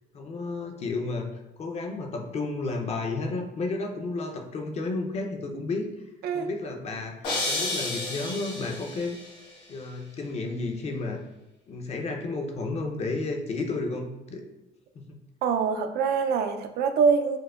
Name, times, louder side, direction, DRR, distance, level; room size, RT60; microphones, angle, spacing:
voice 1, 0.1-5.9 6.3-9.2 9.7-11.2 11.7-14.4 15.0-15.2, left 3 dB, 40° left, 4 dB, 0.5 m, -32 dB
sound 1, 7.2-9.3, left 2 dB, 90° left, 1.3 m, -31 dB
voice 2, 15.4-17.4, right 6 dB, 70° right, 7 dB, 0.4 m, -24 dB
4.6 x 2.1 x 2.3 m, 0.96 s
cardioid pair, 110°, 17 cm